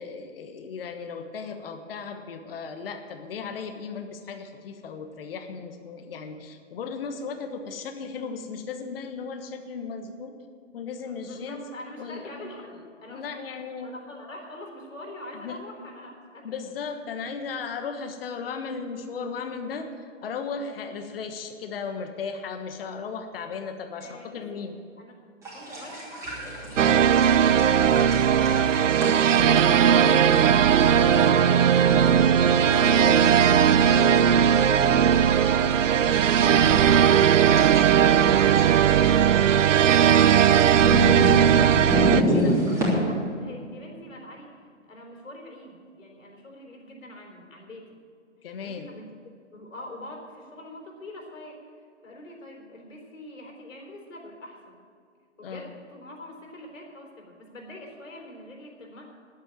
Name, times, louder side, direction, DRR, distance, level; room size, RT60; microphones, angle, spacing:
voice 1, 0.0-10.4 10.7-11.6 12.0-12.4 12.7-13.9 15.3-15.6 16.4-24.8 32.8-33.2 36.6-40.3 41.5-42.5 48.4-48.9 55.4-55.7, left 5 dB, 50° left, 6 dB, 1.3 m, -36 dB
voice 2, 11.0-13.4 13.8-16.6 24.0-24.6 25.0-25.2 25.5-28.7 29.2-31.7 32.3-32.6 33.3-35.9 41.1-47.9 48.6-49.1 49.5-54.7 55.4-59.1, left 1 dB, 80° left, 1 dB, 3.8 m, -44 dB
sound 1, 25.4-42.9, equal, 10° right, 3.1 m, -32 dB
sound 2, 26.2-41.3, left 1 dB, 25° right, 1.5 m, -44 dB
sound 3, 26.8-42.2, right 8 dB, 75° right, 0.6 m, -18 dB
10.5 x 8.9 x 8.9 m, 2.3 s
hypercardioid pair, 150°, 38 cm